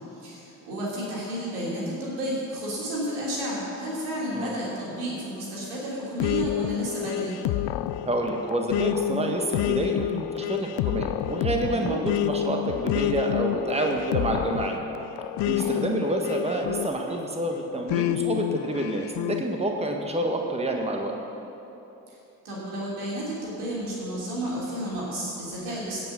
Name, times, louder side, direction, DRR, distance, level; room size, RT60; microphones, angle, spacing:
voice 1, 0.2-7.4 11.7-11.9 15.4-15.8 22.1-22.2 22.4-26.0, right 1 dB, 85° right, -6 dB, 3.2 m, -32 dB
sound 1, 6.2-17.3 17.9-19.4, left 14 dB, 70° left, 0.5 m, -28 dB
voice 2, 8.0-14.8 15.4-21.1, right 1 dB, 15° right, 2 dB, 1.5 m, -28 dB
16.5 x 6.1 x 6.2 m, 3.0 s
hypercardioid pair, 50°, 43 cm